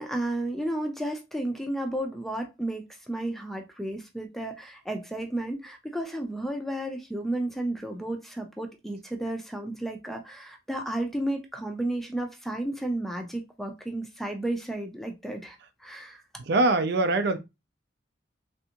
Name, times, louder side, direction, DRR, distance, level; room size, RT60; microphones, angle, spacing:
voice 1, 0.0-16.2, right 1 dB, ahead, 0.5 m, -32 dB
voice 2, 16.5-17.4, right 2 dB, 60° right, 0.5 m, -23 dB
3.3 x 2.6 x 2.8 m
head